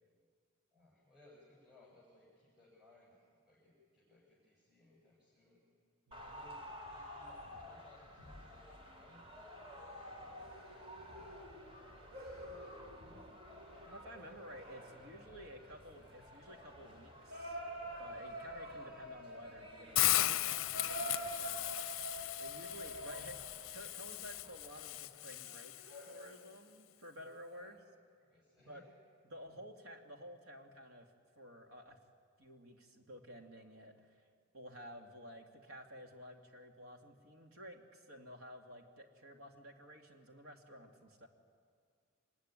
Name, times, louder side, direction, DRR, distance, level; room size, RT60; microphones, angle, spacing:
voice 1, 0.7-3.2 3.4-5.6 6.2-6.6 6.9-11.3 11.6-13.2 27.4-27.8 28.2-28.8, left 2 dB, 5° right, -5 dB, 5.6 m, -65 dB
sound 1, 6.1-25.0, equal, 25° right, 3.3 m, -54 dB
sound 2, 8.7-9.2 10.3-16.3 17.3-23.8 25.1-26.5, right 1 dB, 50° right, 5.1 m, -48 dB
voice 2, 13.8-17.6 18.0-21.7 22.4-27.8 28.7-28.8 29.2-31.1 31.4-32.0 32.4-34.3 34.5-41.3, equal, 75° right, 3 dB, 2.6 m, -53 dB
Hiss, 20.0-26.0, left 15 dB, 70° left, 0.6 m, -36 dB
24.5 x 20.5 x 9.9 m, 2.1 s
head